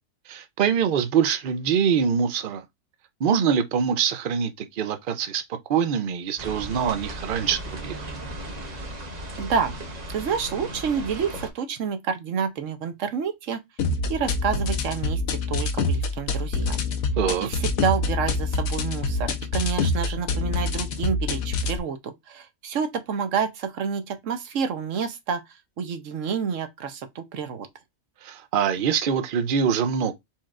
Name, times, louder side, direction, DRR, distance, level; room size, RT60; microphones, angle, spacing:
voice 1, 0.3-2.6 3.2-5.4 5.7-8.1 17.2-17.5 28.2-30.1, right 7 dB, 50° right, 0.6 m, -24 dB
sound 1, 6.4-11.5, right 1 dB, 35° right, 1.0 m, -36 dB
voice 2, 9.4-9.8 10.1-13.6 14.1-16.9 17.4-25.4 25.8-27.7, right 6 dB, 70° right, 1.1 m, -29 dB
sound 2, 13.8-21.8, left 3 dB, 85° left, 1.2 m, -26 dB
4.4 x 4.3 x 2.4 m
omnidirectional pair, 1.4 m